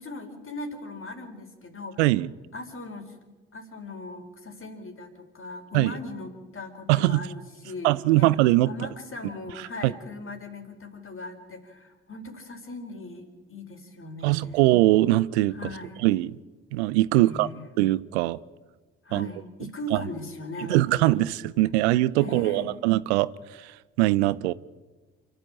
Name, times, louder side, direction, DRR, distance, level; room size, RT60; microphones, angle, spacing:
voice 1, 0.0-2.0 2.5-3.1 3.5-7.9 8.2-8.3 8.7-14.6 15.5-16.1 17.2-17.7 19.0-21.3 22.1-22.8, left 2 dB, 40° left, 5 dB, 4.5 m, -39 dB
voice 2, 2.0-2.3 5.7-5.9 6.9-7.2 7.8-8.7 9.6-9.9 14.2-15.5 16.0-16.4 16.7-17.5 17.8-18.4 19.1-19.3 19.9-20.0 20.7-24.5, right 17 dB, 80° right, 18 dB, 0.6 m, -22 dB
28.0 x 12.5 x 8.8 m, 1.3 s
hypercardioid pair, 45°, 33 cm